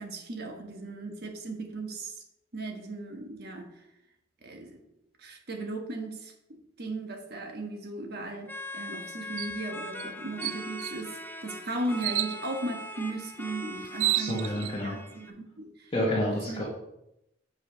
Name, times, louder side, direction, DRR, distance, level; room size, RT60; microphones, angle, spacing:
voice 1, 0.0-2.1 2.5-3.7 4.4-4.8 5.2-6.3 6.8-15.9 16.5-16.6, right 2 dB, 60° right, 3 dB, 1.4 m, -37 dB
sound 1, 8.4-15.3, left 1 dB, 10° left, 0.5 m, -41 dB
sound 2, 9.4-9.6 10.0-10.1 10.4-11.0 12.0-12.4 13.5-13.6 13.8-14.7, right 15 dB, 85° right, 0.3 m, -30 dB
voice 2, 14.1-15.0 15.9-16.6, left 1 dB, 30° left, -6 dB, 1.8 m, -29 dB
7.6 x 5.3 x 5.0 m, 0.85 s
head